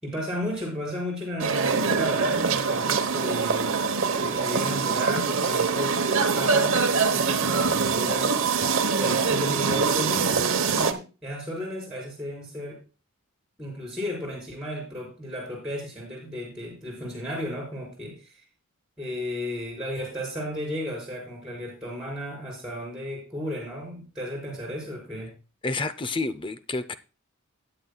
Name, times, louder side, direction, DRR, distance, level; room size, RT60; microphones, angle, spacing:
voice 1, 0.0-3.8 4.2-6.0 6.3-8.3 9.0-10.3 10.7-12.8 13.6-18.3 19.0-25.3, equal, 5° right, 4.6 m, -34 dB
sound 1, 1.4-10.9, right 5 dB, 60° right, 1.0 m, -24 dB
voice 2, 25.6-27.0, left 3 dB, 20° left, 0.5 m, -29 dB
15.5 x 9.5 x 2.3 m
head